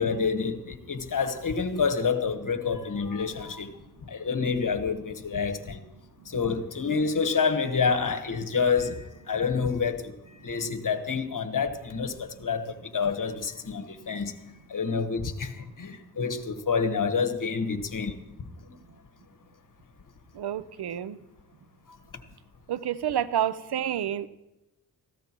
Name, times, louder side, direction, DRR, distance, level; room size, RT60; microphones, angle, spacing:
voice 1, 0.0-3.7 4.1-5.8 6.2-10.1 10.4-14.4 14.7-18.1 21.9-22.0, left 5 dB, 50° left, 1.3 m, -28 dB
voice 2, 20.4-21.2 22.7-24.3, right 10 dB, 75° right, 0.7 m, -29 dB
17.0 x 15.0 x 3.0 m
cardioid pair, 55°, 39 cm